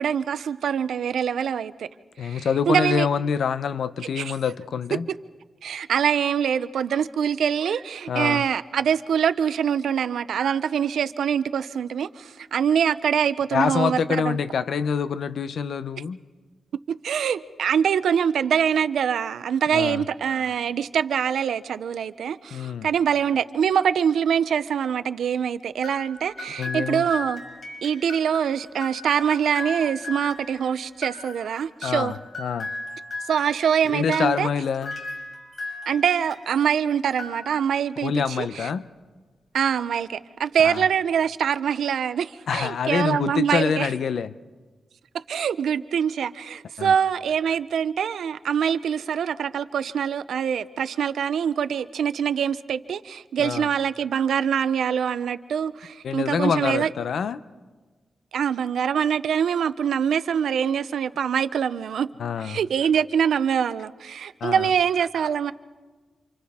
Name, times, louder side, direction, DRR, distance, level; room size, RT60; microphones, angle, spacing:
voice 1, 0.0-1.9 2.2-3.1 4.2-4.3 5.6-14.4 16.9-27.4 27.8-32.1 33.3-34.5 35.9-38.7 39.5-43.9 45.1-56.9 58.3-62.1 62.4-65.5, right 8 dB, 85° right, 13 dB, 0.5 m, -24 dB
voice 2, 2.2-5.1 8.1-8.4 13.5-16.2 19.7-20.0 22.5-22.9 26.6-27.1 31.8-32.7 33.8-34.9 38.0-38.9 40.6-40.8 42.5-44.3 46.8-46.9 53.4-53.7 56.0-57.4 62.2-62.6 64.4-64.7, left 6 dB, 70° left, 13 dB, 0.6 m, -26 dB
sound 1, 25.8-36.7 37.1-37.9, left 2 dB, 40° left, 4.8 m, -38 dB
29.0 x 27.5 x 3.6 m, 1.4 s
wide cardioid pair, 145°, 0 cm